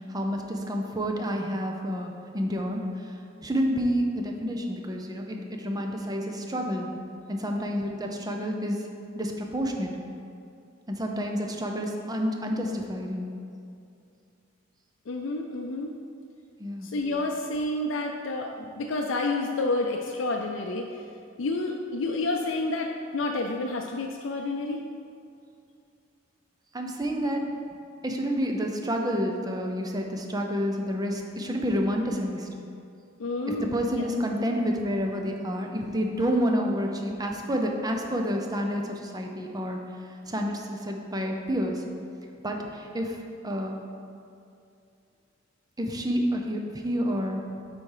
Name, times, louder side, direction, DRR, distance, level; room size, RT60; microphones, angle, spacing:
voice 1, 0.1-2.8 3.4-6.9 7.3-8.8 9.1-9.9 10.9-13.3 16.6-16.9 26.7-27.5 28.0-32.5 33.5-39.8 40.3-41.8 42.4-43.1 43.4-43.8 45.8-47.4, equal, 20° right, 2 dB, 0.7 m, -29 dB
voice 2, 15.1-15.9 16.8-21.0 21.4-24.8 33.2-34.1, left 2 dB, 80° left, 2 dB, 0.5 m, -29 dB
8.3 x 4.3 x 4.8 m, 2.5 s
head